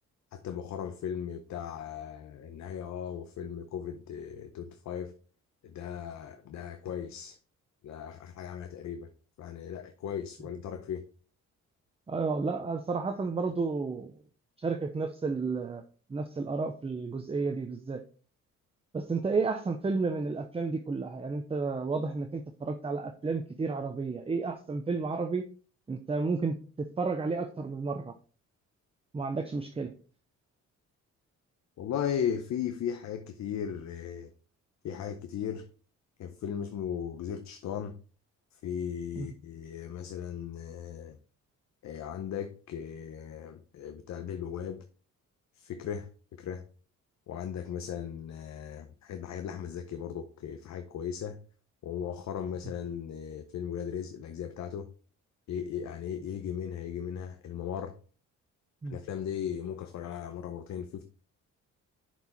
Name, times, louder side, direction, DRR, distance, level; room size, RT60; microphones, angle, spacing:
voice 1, 0.3-5.2 5.6-7.4 7.8-9.1 9.4-11.0 31.8-34.3 34.8-35.7 36.2-38.0 38.5-41.2 41.8-44.9 45.5-46.6 47.3-51.4 51.8-54.9 55.5-58.0 58.9-61.0, left 8 dB, 65° left, 0.7 m, -37 dB
voice 2, 12.1-14.1 14.6-15.8 16.1-18.0 18.9-25.4 25.9-28.1 29.1-29.9 39.2-39.3 58.8-59.0, right 4 dB, 20° right, 0.6 m, -32 dB
6.7 x 4.6 x 4.3 m
cardioid pair, 90°, 30 cm